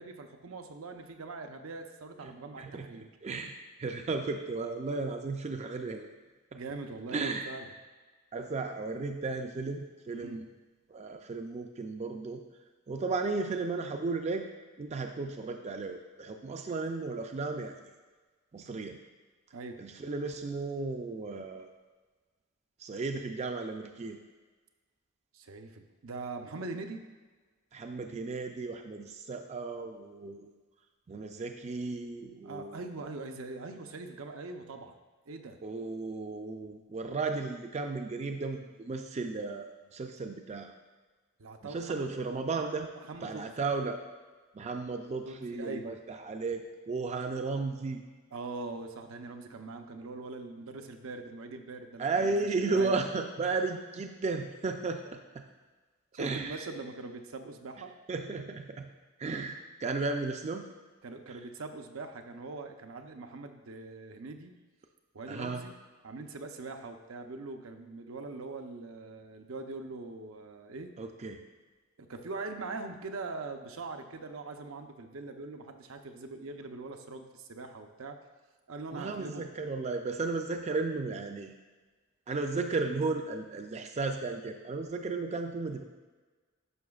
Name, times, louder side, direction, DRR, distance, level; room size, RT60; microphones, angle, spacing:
voice 1, 0.0-3.1 6.5-7.7 10.1-10.4 19.5-19.8 25.3-27.0 32.4-35.0 35.3-35.6 41.4-42.1 43.0-43.4 45.3-46.0 48.3-52.4 52.7-53.0 56.1-57.9 61.0-64.5 65.1-65.7 66.0-70.9 72.0-78.2 78.7-79.4, right 3 dB, 80° right, 5 dB, 0.6 m, -42 dB
voice 2, 2.2-2.9 3.2-3.5 3.8-6.1 6.5-6.6 7.1-7.5 8.3-10.5 10.9-12.4 12.9-14.5 14.8-17.8 18.5-19.0 19.8-21.7 22.8-24.2 27.7-30.5 31.1-32.8 35.6-40.7 41.6-42.9 43.2-44.0 44.5-48.0 52.0-55.4 56.1-56.7 58.1-58.9 59.2-60.6 61.3-61.4 65.3-65.6 71.0-71.4 78.9-81.5 82.3-85.8, right 3 dB, 35° right, 5 dB, 0.4 m, -34 dB
11.0 x 5.7 x 2.4 m, 1.3 s
head